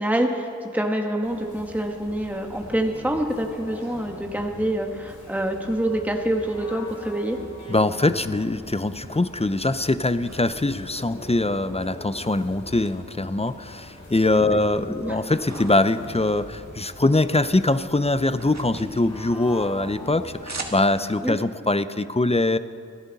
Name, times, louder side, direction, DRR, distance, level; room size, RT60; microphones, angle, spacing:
voice 1, 0.0-7.4 14.5-14.6 15.0-15.2 21.2-21.4, right 1 dB, 5° right, 2 dB, 1.4 m, -26 dB
sound 1, 1.2-20.8, left 1 dB, 65° left, 4.6 m, -42 dB
voice 2, 7.7-22.6, left 2 dB, 20° left, 12 dB, 0.6 m, -23 dB
sound 2, 8.5-11.3 11.8-12.9 13.2-14.2 14.6-17.2 17.5-21.3, right 3 dB, 55° right, 1.7 m, -43 dB
28.0 x 10.5 x 4.1 m, 2.2 s
wide cardioid pair, 50°, 32 cm